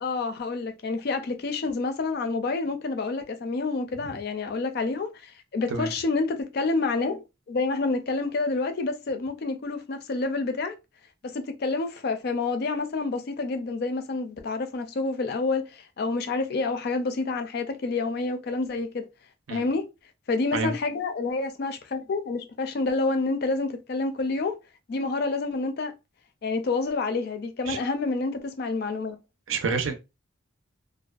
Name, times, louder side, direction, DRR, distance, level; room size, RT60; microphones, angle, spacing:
voice 1, 0.0-10.7 11.2-19.0 19.5-19.8 20.3-24.6 24.9-25.9 26.4-29.2, left 3 dB, 50° left, 0.4 m, -28 dB
voice 2, 29.5-30.0, right 4 dB, 75° right, 0.5 m, -28 dB
2.5 x 2.2 x 2.3 m
head